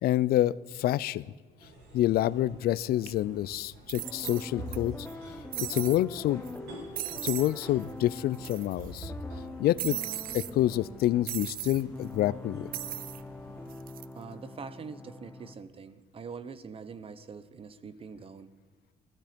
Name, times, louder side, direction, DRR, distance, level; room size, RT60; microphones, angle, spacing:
voice 1, 0.0-1.3 1.9-5.1 5.6-6.4 7.2-9.1 9.6-10.0 10.3-12.7, left 14 dB, 65° left, 20 dB, 0.5 m, -27 dB
sound 1, 1.6-13.7, right 1 dB, 80° right, 6.7 m, -47 dB
sound 2, 3.1-3.2 3.9-4.8 5.1-5.2 5.5-6.0 6.5-6.6 7.0-7.5 7.8-7.9 8.2-8.9 9.8-10.5 11.3-11.8 12.7-13.2 13.7-14.1, right 14 dB, 60° right, 0.4 m, -37 dB
sound 3, 3.9-15.5, left 2 dB, 10° left, 0.8 m, -44 dB
voice 2, 14.1-18.5, right 5 dB, 35° right, 15 dB, 0.9 m, -44 dB
16.5 x 14.5 x 5.2 m, 1.4 s
cardioid pair, 110°, 17 cm